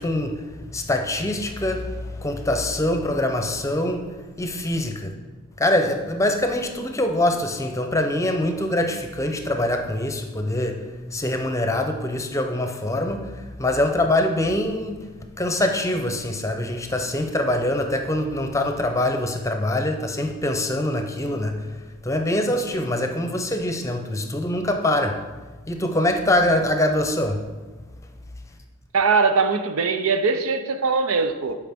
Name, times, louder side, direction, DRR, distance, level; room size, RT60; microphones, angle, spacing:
voice 1, 0.0-5.1 5.6-15.1 15.4-21.7 22.0-25.2 25.7-27.4, left 1 dB, 15° left, 0.7 m, -24 dB
voice 2, 28.9-31.6, right 4 dB, 80° right, 0.6 m, -21 dB
12.5 x 4.9 x 3.6 m
head